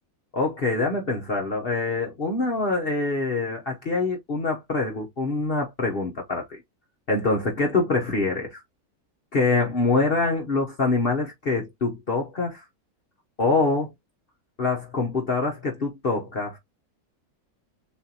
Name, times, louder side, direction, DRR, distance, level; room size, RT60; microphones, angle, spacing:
voice 1, 0.3-6.6 7.1-8.6 9.3-12.6 13.4-13.9 14.6-16.6, left 3 dB, 45° left, 1.0 m, -25 dB
7.0 x 2.5 x 2.9 m
omnidirectional pair, 1.6 m